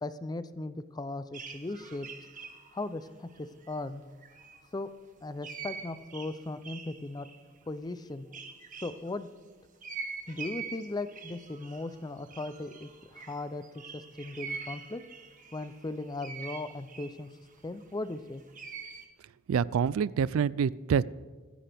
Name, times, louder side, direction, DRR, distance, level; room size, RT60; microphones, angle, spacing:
voice 1, 0.0-2.1 2.7-4.0 4.7-4.9 5.2-7.3 7.7-8.3 8.8-9.3 10.3-15.0 15.5-17.3 17.6-18.4, left 2 dB, 20° left, 13 dB, 0.5 m, -37 dB
sound 1, 1.3-4.7 5.4-9.1 9.8-19.1, right 5 dB, 40° right, 1.5 m, -44 dB
voice 2, 19.5-21.0, right 7 dB, 85° right, 20 dB, 0.3 m, -26 dB
25.0 x 10.0 x 3.4 m, 1.5 s
head